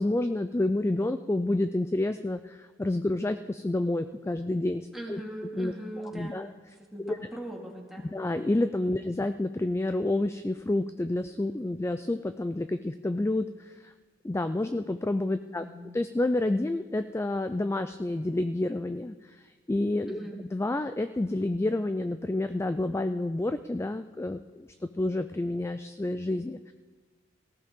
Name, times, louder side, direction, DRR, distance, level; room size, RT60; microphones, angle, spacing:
voice 1, 0.0-5.2 5.6-5.7 6.1-6.5 7.0-7.2 8.1-13.9 14.2-15.6 15.9-20.2 20.5-26.7, left 2 dB, 15° left, 10 dB, 0.3 m, -29 dB
voice 2, 4.9-6.4 6.8-8.1 8.9-9.1 15.5-15.9 20.1-20.4, right 1 dB, ahead, -2 dB, 2.3 m, -40 dB
18.5 x 15.5 x 3.7 m, 1.4 s
head